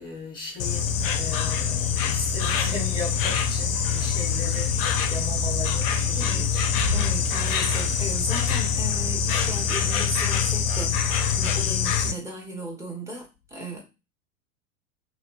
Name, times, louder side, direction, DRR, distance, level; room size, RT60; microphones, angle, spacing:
voice 1, 0.0-6.9, left 3 dB, 10° left, 1.2 m, -37 dB
Insect, 0.6-12.1, left 6 dB, 45° left, 0.5 m, -24 dB
voice 2, 6.2-6.5 6.9-13.3 13.5-13.8, right 1 dB, 5° right, 1.0 m, -36 dB
2.7 x 2.7 x 3.0 m
figure-of-eight pair, 85°, 41 cm